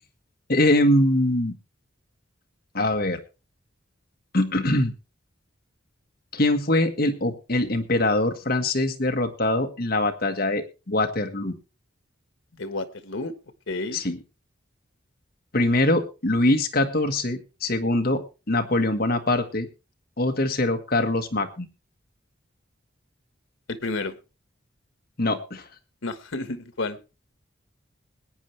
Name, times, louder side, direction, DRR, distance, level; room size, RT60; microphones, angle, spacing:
voice 1, 0.5-1.5 2.7-3.2 4.3-4.9 6.3-11.5 13.9-14.2 15.5-19.7 20.2-21.7 25.2-25.6, left 1 dB, 50° left, 6 dB, 1.5 m, -23 dB
voice 2, 12.5-13.3 13.7-14.0 23.7-24.2 26.0-27.0, left 2 dB, 90° left, 11 dB, 1.3 m, -31 dB
21.0 x 9.3 x 3.3 m, 0.31 s
head